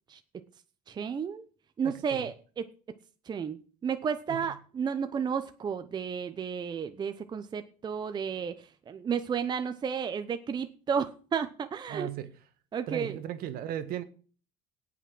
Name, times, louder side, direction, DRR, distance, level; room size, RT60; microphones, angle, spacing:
voice 1, 0.9-1.4 1.8-2.7 3.3-3.6 3.8-12.1 12.7-13.2, right 7 dB, 25° right, 10 dB, 0.8 m, -32 dB
voice 2, 1.8-2.3 4.3-4.5 11.9-12.3 12.9-14.0, right 11 dB, 60° right, 11 dB, 1.6 m, -37 dB
18.0 x 6.0 x 6.1 m, 0.40 s
cardioid pair, 150°, 17 cm